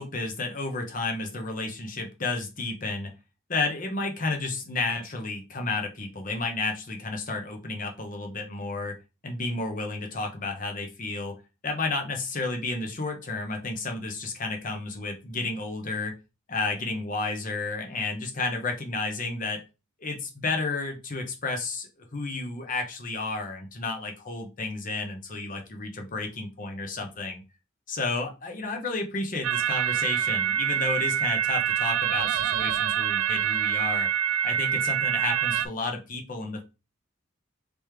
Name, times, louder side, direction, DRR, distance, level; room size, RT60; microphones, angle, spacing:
voice 1, 0.0-3.1 3.5-9.0 9.2-11.3 11.6-16.1 16.5-19.6 20.0-27.4 27.9-34.1 34.4-36.6, left 3 dB, 40° left, 3 dB, 0.8 m, -31 dB
sound 1, 29.4-35.7, right 9 dB, 85° right, 0.3 m, -26 dB
3.4 x 3.1 x 3.1 m, 0.29 s
head